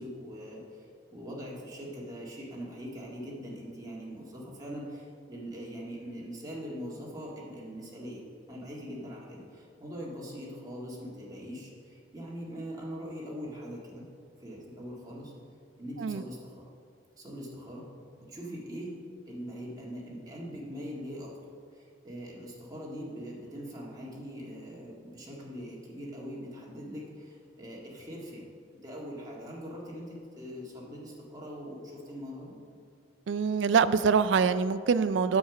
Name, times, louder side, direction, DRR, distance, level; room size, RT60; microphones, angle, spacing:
voice 1, 0.0-14.0 14.4-15.3 15.8-16.7 17.2-17.9 18.2-18.9 19.3-21.3 21.7-28.5 28.8-32.6, equal, 20° right, -4 dB, 1.8 m, -42 dB
voice 2, 33.3-35.4, right 6 dB, 65° right, 13 dB, 0.4 m, -24 dB
8.6 x 6.5 x 6.0 m, 2.3 s
head